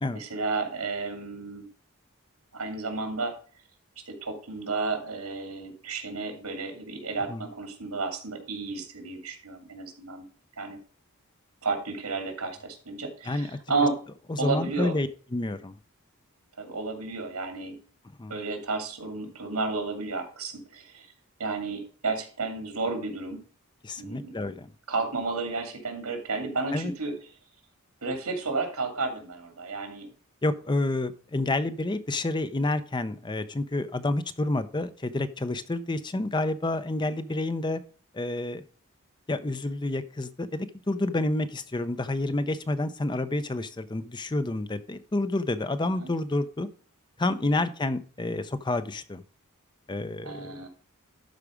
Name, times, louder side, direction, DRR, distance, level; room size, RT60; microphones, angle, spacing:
voice 1, 0.1-1.7 2.5-3.4 4.1-10.3 10.6-10.8 11.6-14.0 14.4-15.0 16.6-17.8 18.3-21.1 21.4-23.4 24.0-24.5 24.9-27.1 28.0-30.1 37.0-37.2 46.0-46.1 50.2-50.7, right 3 dB, 85° right, 5 dB, 2.6 m, -32 dB
voice 2, 13.3-13.6 14.3-15.7 18.2-18.3 23.8-24.7 26.7-26.9 30.4-37.8 38.1-38.6 39.3-46.7 47.2-49.2 49.9-50.7, left 2 dB, 20° left, 12 dB, 0.5 m, -29 dB
12.0 x 4.8 x 5.0 m, 0.41 s
head